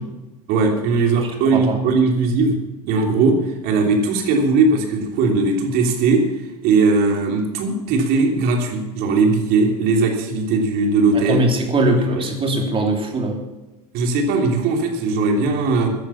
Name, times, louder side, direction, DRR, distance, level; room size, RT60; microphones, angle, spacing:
voice 1, 0.5-2.6 2.9-3.4 3.6-6.2 6.6-11.5 11.9-12.2 13.9-15.9, right 3 dB, 50° right, 2 dB, 3.2 m, -19 dB
voice 2, 1.1-1.8 11.1-13.4, right 1 dB, 25° right, 2 dB, 3.3 m, -21 dB
15.5 x 10.5 x 7.2 m, 1.0 s
figure-of-eight pair, 80°, 20 cm